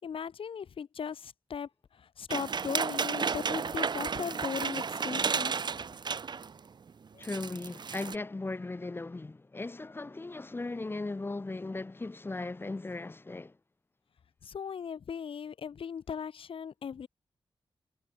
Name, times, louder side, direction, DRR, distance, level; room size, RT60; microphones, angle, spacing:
voice 1, 0.0-5.9 7.1-7.2 14.4-17.1, left 7 dB, 80° left, 4.8 m, -38 dB
sound 1, 2.3-6.6 6.9-7.0 7.2-8.2, right 6 dB, 55° right, 1.4 m, -32 dB
voice 2, 7.2-13.6, left 2 dB, 25° left, 4.6 m, -37 dB
wide cardioid pair, 125°, 9 cm